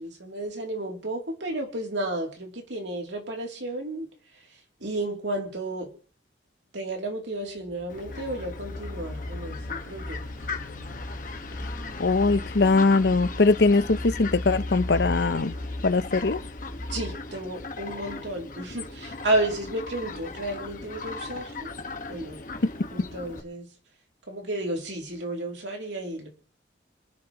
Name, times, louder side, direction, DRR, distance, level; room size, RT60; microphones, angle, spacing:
voice 1, 0.0-4.1 4.4-4.5 4.8-5.9 6.7-10.5 16.9-21.7 22.1-22.4 22.9-23.7 24.3-26.3, right 1 dB, 75° right, 3.0 m, -32 dB
sound 1, 7.7-17.1, left 1 dB, 55° right, 7.4 m, -37 dB
Fowl, 7.9-23.4, left 3 dB, 45° left, 1.5 m, -39 dB
voice 2, 12.0-15.6 15.8-16.4, left 3 dB, 60° left, 0.7 m, -21 dB
26.0 x 10.5 x 3.0 m
head